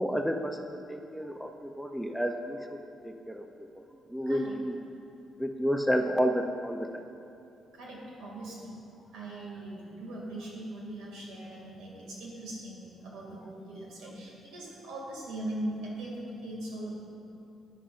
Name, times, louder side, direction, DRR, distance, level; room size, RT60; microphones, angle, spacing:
voice 1, 0.0-3.5 3.8-3.9 4.1-4.8 5.4-7.0, equal, ahead, 4 dB, 0.5 m, -31 dB
voice 2, 7.8-8.8 9.1-17.0, right 1 dB, 85° right, -3 dB, 2.3 m, -40 dB
11.0 x 9.9 x 2.5 m, 2.7 s
cardioid pair, 90°, 0 cm